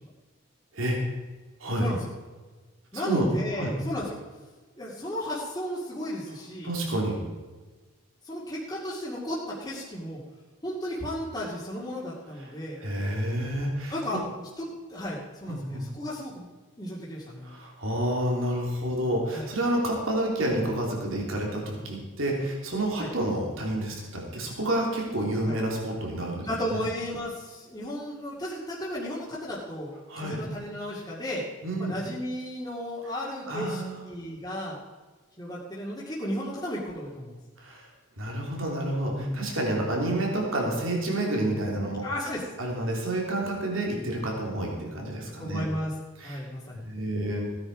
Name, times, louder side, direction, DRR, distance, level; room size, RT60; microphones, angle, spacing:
voice 1, 1.8-2.1 2.9-4.2 4.8-6.7 8.2-10.2 10.6-12.8 13.9-14.2 14.6-16.4 16.8-17.5 19.3-19.5 23.0-23.1 25.4-25.6 26.5-31.4 31.8-34.8 35.4-37.4 39.0-39.6 42.0-42.4 42.8-42.9 45.4-45.9 46.2-46.8, equal, 20° left, -7 dB, 2.1 m, -34 dB
voice 2, 2.9-3.3 3.5-3.7 6.6-7.2 12.8-14.2 15.5-15.8 17.4-26.8 30.1-30.4 31.6-31.9 33.5-34.0 37.6-37.9 38.2-42.0 42.6-45.7 46.2-46.4 46.7-47.5, right 1 dB, 70° right, -1 dB, 3.3 m, -29 dB
16.5 x 9.8 x 4.9 m, 1.3 s
head